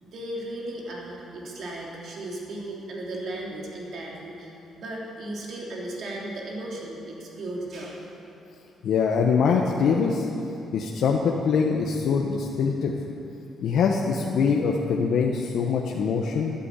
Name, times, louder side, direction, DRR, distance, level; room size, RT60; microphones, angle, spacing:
voice 1, 0.0-8.1, right 1 dB, 65° right, -3 dB, 3.1 m, -36 dB
voice 2, 8.8-10.3 10.7-12.9 13.6-16.5, left 5 dB, 70° left, 0 dB, 1.0 m, -23 dB
14.5 x 8.5 x 8.3 m, 2.8 s
cardioid pair, 90°, 0 cm